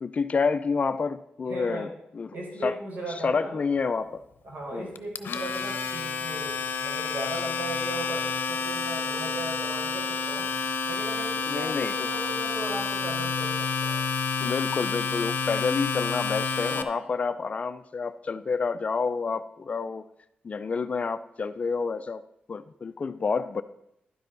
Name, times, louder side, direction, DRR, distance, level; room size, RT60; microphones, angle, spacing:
voice 1, 0.0-2.3 2.6-2.8 3.2-4.1 4.7-4.9 11.5-11.9 14.4-20.0 20.4-22.2 22.5-23.6, left 5 dB, 40° left, 12 dB, 0.4 m, -28 dB
voice 2, 1.5-1.9 2.3-3.6 4.4-10.5 10.8-14.0, right 1 dB, 55° right, -2 dB, 4.6 m, -37 dB
Domestic sounds home sounds, 5.0-16.8, left 5 dB, 65° left, 0.7 m, -29 dB
11.5 x 10.0 x 3.9 m, 0.80 s
wide cardioid pair, 135°, 4 cm